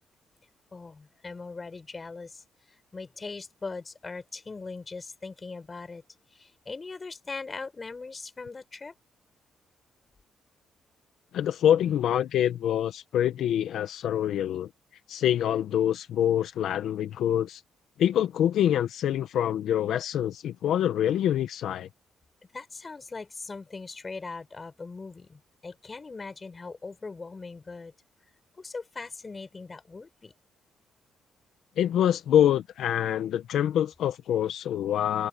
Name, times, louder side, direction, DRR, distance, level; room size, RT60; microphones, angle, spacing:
voice 1, 0.7-2.4 2.9-6.0 6.3-8.9 22.5-27.9 28.6-30.3, left 4 dB, 30° left, 6.0 m, -40 dB
voice 2, 11.3-14.7 15.1-17.6 18.0-21.9 31.8-35.3, left 10 dB, 75° left, 1.1 m, -25 dB
cardioid pair, 90°, 0 cm